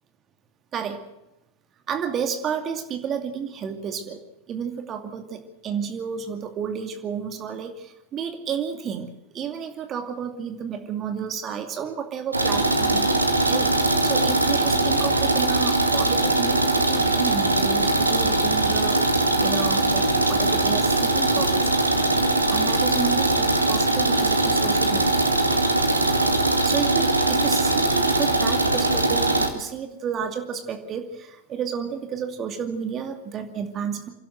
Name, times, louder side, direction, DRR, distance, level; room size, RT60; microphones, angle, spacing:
voice 1, 1.9-4.2 4.5-9.1 9.3-13.1 13.4-13.7 14.0-19.0 19.4-21.8 22.5-25.3 26.6-34.1, right 7 dB, 30° right, 6 dB, 2.5 m, -31 dB
sound 1, 12.3-29.5, right 2 dB, 85° right, 2.0 m, -21 dB
28.0 x 12.0 x 7.8 m, 0.92 s
figure-of-eight pair, 90°, 0 cm